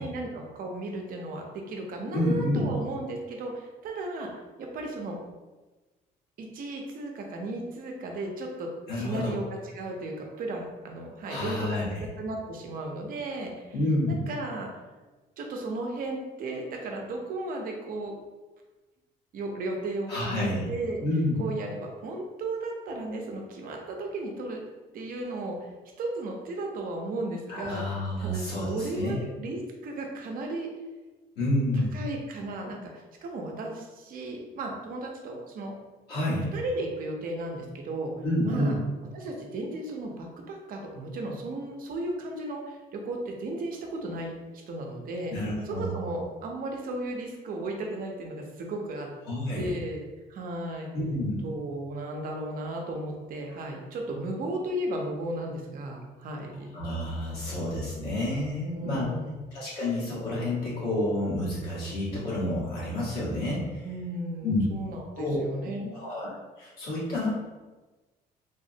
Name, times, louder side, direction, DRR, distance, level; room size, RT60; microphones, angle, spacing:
voice 1, 0.0-4.3 4.6-5.2 6.4-11.8 12.2-13.7 14.1-14.7 15.4-18.1 19.3-21.0 21.4-24.6 24.9-25.7 26.0-30.7 31.7-35.7 36.5-38.1 38.4-38.7 39.1-49.1 49.6-50.0 50.3-50.9 51.4-56.8 58.6-59.4 63.8-66.0, right 2 dB, 55° right, 1 dB, 0.6 m, -35 dB
voice 2, 2.1-2.7 8.9-9.4 11.3-12.0 13.7-14.3 20.1-20.6 21.0-21.5 27.5-29.2 31.3-32.0 36.1-36.5 38.2-38.8 45.3-45.9 49.2-49.7 50.9-51.4 56.7-59.1 59.5-63.9 64.4-64.6 65.2-65.4 65.9-66.3 66.6-67.3, left 1 dB, 70° left, -8 dB, 1.3 m, -29 dB
3.5 x 2.0 x 2.7 m, 1.2 s
cardioid pair, 110°, 17 cm